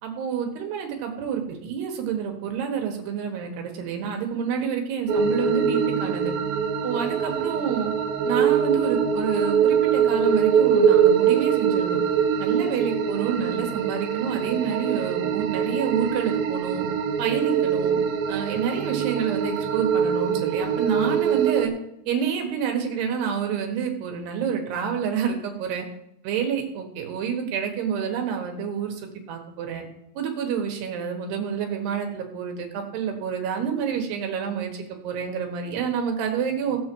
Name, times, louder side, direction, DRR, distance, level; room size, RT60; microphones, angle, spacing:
voice 1, 0.0-6.3 6.8-7.9 8.2-12.0 12.4-16.8 17.2-18.0 18.3-21.7 22.1-25.9 26.2-29.8 30.2-36.8, right 7 dB, 70° right, 3 dB, 3.2 m, -28 dB
sound 1, 5.1-21.7, right 7 dB, 85° right, 2.0 m, -23 dB
17.0 x 7.4 x 4.6 m, 0.81 s
omnidirectional pair, 5.3 m